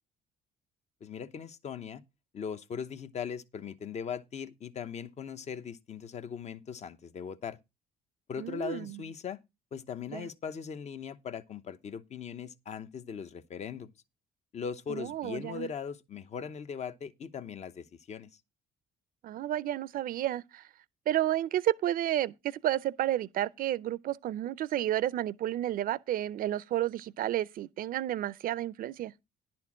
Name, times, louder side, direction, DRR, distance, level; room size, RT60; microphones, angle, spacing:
voice 1, 1.0-2.0 2.3-7.6 8.3-9.4 9.7-13.9 14.5-18.3, left 7 dB, 40° left, 0.9 m, -39 dB
voice 2, 8.4-9.0 10.1-10.3 14.9-15.7 19.2-20.6 21.1-29.1, right 13 dB, 55° right, 0.6 m, -31 dB
11.0 x 4.4 x 7.3 m
cardioid pair, 110°, 17 cm